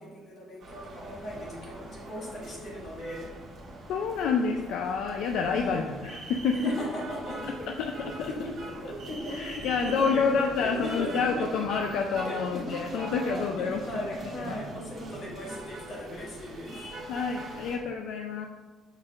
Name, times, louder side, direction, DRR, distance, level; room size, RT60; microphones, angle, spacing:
voice 1, 0.0-3.4 5.5-5.9 6.6-7.7 8.3-11.7 12.3-12.8 13.4-16.8, equal, 45° left, -3 dB, 1.7 m, -37 dB
sound 1, 0.6-17.8, right 2 dB, 40° right, 1.5 m, -42 dB
voice 2, 3.9-6.6 7.8-7.9 8.2-8.3 9.3-14.2 14.4-14.6 17.1-18.5, left 5 dB, 70° left, 3 dB, 0.4 m, -28 dB
6.3 x 6.1 x 2.5 m, 1.4 s
cardioid pair, 150°, 0 cm